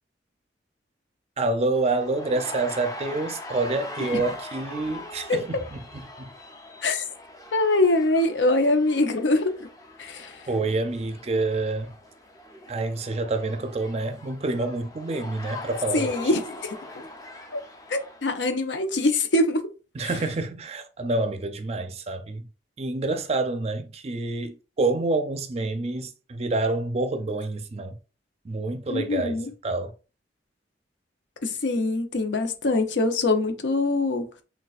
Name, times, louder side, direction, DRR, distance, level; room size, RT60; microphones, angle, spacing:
voice 1, 1.4-6.3 10.5-11.9 12.7-16.1 20.0-22.5 22.8-27.9 28.4-29.9, right 2 dB, 35° right, 0.5 m, -28 dB
sound 1, 1.8-18.3, left 2 dB, 20° left, 0.6 m, -42 dB
voice 2, 7.5-9.7 10.0-10.4 15.9-16.8 17.5-17.6 17.9-19.6 20.0-20.1 28.9-29.5 31.4-34.3, left 2 dB, 85° left, 0.7 m, -23 dB
6.4 x 2.3 x 2.4 m
head